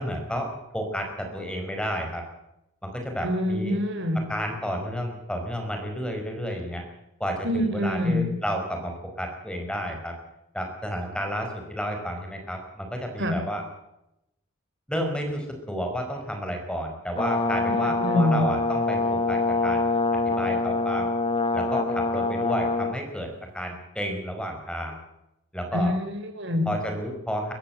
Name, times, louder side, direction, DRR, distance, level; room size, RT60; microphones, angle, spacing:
voice 1, 0.0-2.2 2.8-3.8 4.3-6.8 7.2-10.1 10.5-13.6 14.9-19.8 20.2-21.1 21.5-25.0 25.5-25.9 26.6-27.5, equal, 5° left, 3 dB, 5.0 m, -31 dB
voice 2, 3.2-4.2 7.4-8.3 13.2-13.4 17.8-18.5 25.7-26.7, left 1 dB, 60° right, 6 dB, 4.8 m, -25 dB
Brass instrument, 17.2-23.0, left 3 dB, 25° left, 1.5 m, -25 dB
23.5 x 15.0 x 7.7 m, 0.87 s
head